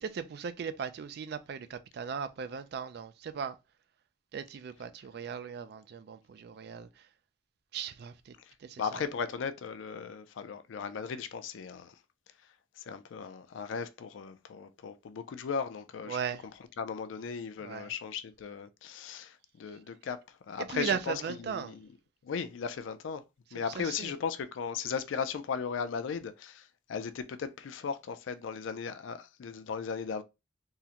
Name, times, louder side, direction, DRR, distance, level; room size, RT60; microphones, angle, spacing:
voice 1, 0.0-3.6 4.3-7.0 7.7-8.3 8.6-8.8 16.1-16.4 17.6-17.9 20.6-21.8 23.8-24.1, right 7 dB, 55° right, 0.3 m, -37 dB
voice 2, 8.4-12.0 12.3-16.2 16.8-21.9 22.2-23.2 23.5-30.2, left 6 dB, 85° left, 0.4 m, -37 dB
3.7 x 2.1 x 2.8 m
head